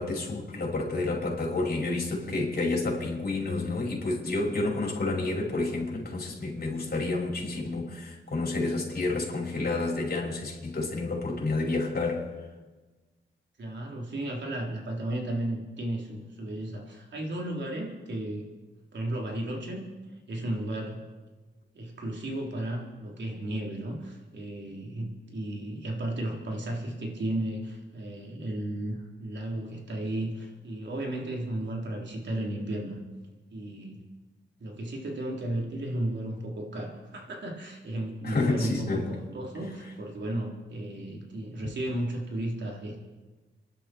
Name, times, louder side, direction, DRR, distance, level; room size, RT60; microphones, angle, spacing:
voice 1, 0.0-12.3 38.2-39.1, left 3 dB, 50° left, 5.3 m, -29 dB
voice 2, 13.6-18.4 18.9-19.9 20.3-21.0 21.7-33.0 33.5-34.0 34.6-43.0, right 1 dB, 65° right, 3.7 m, -34 dB
27.0 x 11.5 x 4.5 m
cardioid pair, 75°, 20 cm